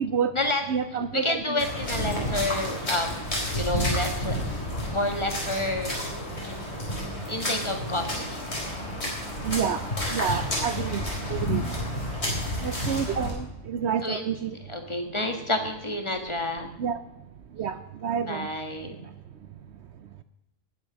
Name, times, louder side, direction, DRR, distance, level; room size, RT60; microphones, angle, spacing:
voice 1, 0.0-0.3 0.7-1.6 9.4-9.8 10.1-11.6 12.6-14.6 16.8-17.0 17.5-18.5, right 7 dB, 65° right, 11 dB, 0.9 m, -29 dB
voice 2, 1.1-4.4 4.9-6.0 7.3-8.4 10.3-10.4 14.0-14.2 14.7-16.7 18.3-19.0, left 2 dB, 25° left, 5 dB, 1.7 m, -29 dB
sound 1, 1.6-13.3, equal, 55° left, 4.8 m, -30 dB
19.5 x 7.6 x 6.2 m, 0.90 s
omnidirectional pair, 1.3 m